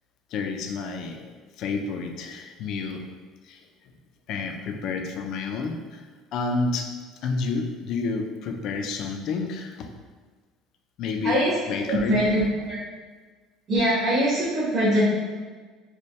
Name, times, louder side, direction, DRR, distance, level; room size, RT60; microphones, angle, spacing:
voice 1, 0.3-1.3 1.6-3.1 3.4-3.9 4.3-6.9 7.2-9.9 11.0-11.4 11.7-12.2, left 4 dB, 55° left, 4 dB, 0.4 m, -30 dB
voice 2, 11.2-11.5 11.9-12.8 13.7-15.1, equal, 35° right, -11 dB, 1.2 m, -22 dB
4.3 x 2.2 x 3.1 m, 1.4 s
cardioid pair, 145°, 0 cm